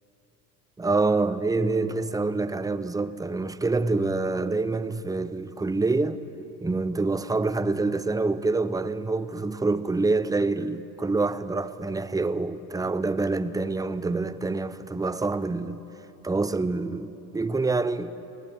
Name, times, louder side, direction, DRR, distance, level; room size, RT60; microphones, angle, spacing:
voice 1, 0.8-6.2 6.6-15.8 16.2-18.2, right 3 dB, 5° right, 0.7 m, -26 dB
22.5 x 17.5 x 7.8 m
supercardioid pair, 90°, 49 cm